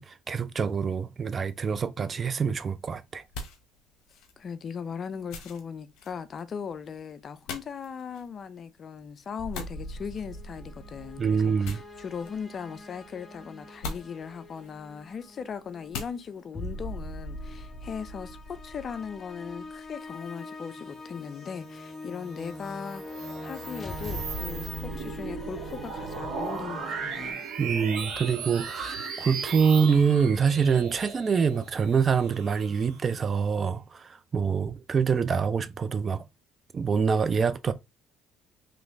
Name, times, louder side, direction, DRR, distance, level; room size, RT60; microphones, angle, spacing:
voice 1, 0.0-3.2 11.2-11.8 27.6-36.2 36.7-37.7, right 6 dB, 40° right, 0.4 m, -25 dB
sound 1, 2.6-16.5, left 3 dB, 75° left, 0.8 m, -45 dB
voice 2, 4.4-27.4, left 6 dB, 45° left, 0.4 m, -38 dB
sound 2, 9.4-27.3, left 1 dB, 30° left, 0.8 m, -41 dB
sound 3, 22.4-33.3, right 6 dB, 75° right, 1.1 m, -37 dB
3.1 x 3.1 x 2.5 m
supercardioid pair, 70°, 0 cm